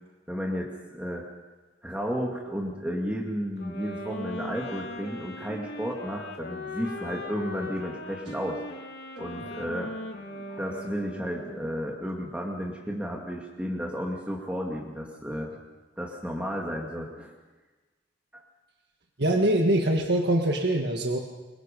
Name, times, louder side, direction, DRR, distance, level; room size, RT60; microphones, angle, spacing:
voice 1, 0.3-1.2 1.8-8.6 9.2-10.0 10.3-15.5 16.0-17.3 18.3-18.4, equal, 5° right, -2 dB, 2.3 m, -33 dB
sound 1, 3.6-11.8, left 1 dB, 60° left, 3.1 m, -39 dB
voice 2, 19.2-21.2, right 1 dB, 60° right, 2 dB, 1.8 m, -23 dB
27.0 x 23.0 x 5.3 m, 1.2 s
head